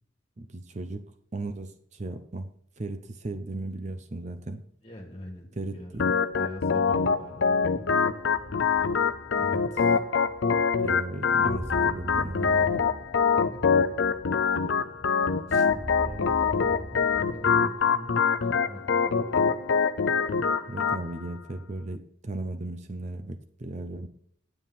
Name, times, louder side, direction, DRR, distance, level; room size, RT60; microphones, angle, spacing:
voice 1, 0.4-1.0 1.3-2.5 2.8-4.6 5.6-6.1 9.4-9.8 10.8-12.8 15.5-15.7 20.7-24.1, right 2 dB, 35° right, 9 dB, 0.6 m, -36 dB
voice 2, 4.8-6.1 6.3-7.9 13.5-13.8 14.6-15.0 15.5-19.6, equal, 30° left, 1 dB, 2.6 m, -43 dB
Organ, 6.0-21.0, left 5 dB, 70° left, 0.6 m, -25 dB
sound 1, 8.3-17.7, right 1 dB, 15° right, 0.9 m, -43 dB
9.3 x 9.1 x 4.1 m, 0.66 s
head